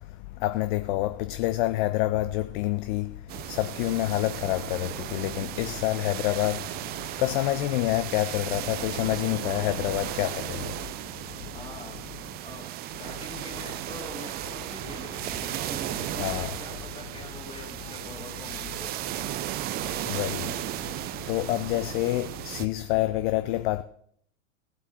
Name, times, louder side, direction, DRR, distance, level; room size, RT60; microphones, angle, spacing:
voice 1, 0.4-3.1 3.5-6.6 7.2-10.6 16.2-16.6 20.1-20.5 21.3-23.8, left 16 dB, 45° left, 0.5 m, -27 dB
sound 1, 3.3-22.7, right 13 dB, 25° right, 0.5 m, -35 dB
voice 2, 11.5-12.1 12.4-12.7 13.0-19.0, left 2 dB, 15° left, 3.3 m, -44 dB
17.0 x 8.1 x 4.2 m
figure-of-eight pair, 95°, 36 cm